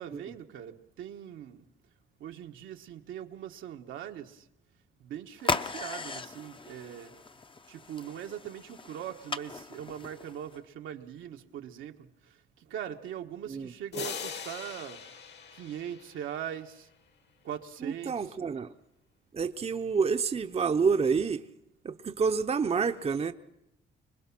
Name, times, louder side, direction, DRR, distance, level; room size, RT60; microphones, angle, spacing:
voice 1, 0.0-1.6 2.2-4.4 5.0-7.1 7.7-12.1 12.7-15.0 15.5-16.9 17.4-18.4, right 10 dB, 85° right, 1.4 m, -41 dB
sound 1, 5.4-10.6, left 4 dB, 25° left, 0.7 m, -37 dB
sound 2, 13.9-16.6, left 6 dB, 60° left, 1.7 m, -41 dB
voice 2, 17.8-18.7 19.3-21.4 21.8-23.3, right 5 dB, 30° right, 0.8 m, -28 dB
25.0 x 20.5 x 6.0 m
cardioid pair, 90°, 20 cm